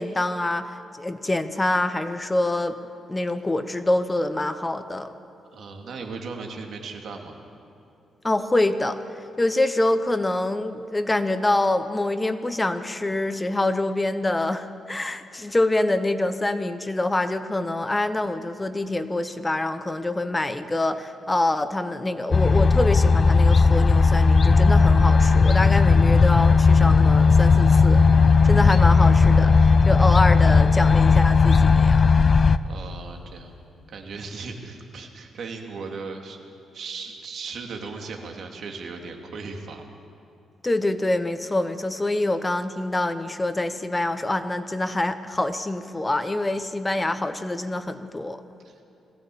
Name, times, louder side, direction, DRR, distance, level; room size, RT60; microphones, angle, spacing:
voice 1, 0.0-2.8 3.1-5.1 8.2-28.0 28.4-32.1 40.6-48.4, left 2 dB, 15° left, 10 dB, 0.9 m, -25 dB
voice 2, 5.5-7.3 32.6-33.5 33.9-36.4 36.7-39.8 48.6-48.8, right 4 dB, 60° right, 2 dB, 2.6 m, -37 dB
sound 1, 22.3-32.6, left 4 dB, 35° left, 0.5 m, -16 dB
21.0 x 16.0 x 8.6 m, 2.8 s
cardioid pair, 130°, 0 cm